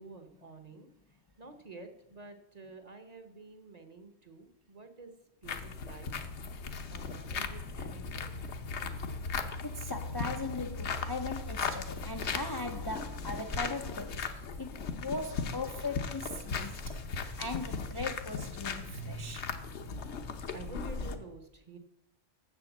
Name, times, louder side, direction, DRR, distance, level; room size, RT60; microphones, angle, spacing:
voice 1, 0.0-5.1 5.4-6.1 6.9-8.3 20.5-21.8, right 3 dB, 35° right, 0.9 m, -50 dB
sound 1, 5.4-21.2, left 4 dB, 65° left, 1.1 m, -37 dB
voice 2, 9.6-14.3 14.6-19.5, left 3 dB, 35° left, 0.4 m, -39 dB
7.5 x 7.1 x 7.1 m
omnidirectional pair, 1.3 m